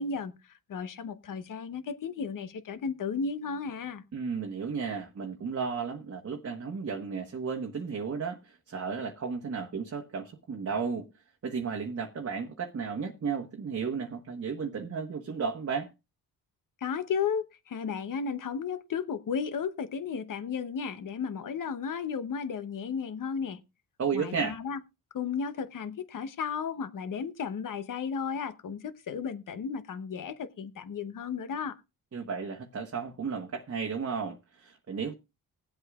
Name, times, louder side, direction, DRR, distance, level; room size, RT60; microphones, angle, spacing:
voice 1, 0.0-4.0 16.8-23.6 24.1-24.8 25.1-31.8, left 6 dB, 55° left, 1.0 m, -34 dB
voice 2, 4.1-11.1 11.4-15.9 24.0-24.6 32.1-35.1, right 5 dB, 40° right, 1.2 m, -33 dB
20.5 x 8.0 x 2.4 m
cardioid pair, 85°, 38 cm